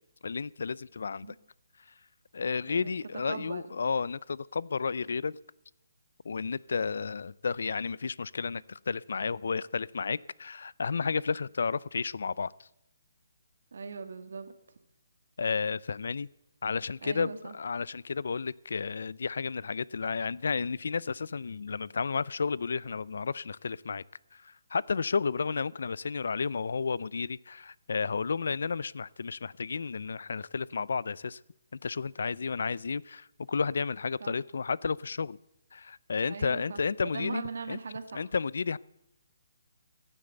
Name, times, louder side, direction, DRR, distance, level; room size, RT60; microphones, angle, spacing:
voice 1, 0.2-1.3 2.3-5.4 6.2-12.7 15.4-16.3 16.6-24.0 24.3-31.4 31.8-35.4 35.7-37.4 37.7-37.8 38.1-38.8, left 5 dB, 65° left, 0.4 m, -32 dB
voice 2, 3.3-3.7 13.7-14.5 17.0-17.5 34.2-34.3 36.2-38.3, right 4 dB, 65° right, 1.8 m, -39 dB
15.0 x 9.8 x 8.0 m
hypercardioid pair, 170°, 0 cm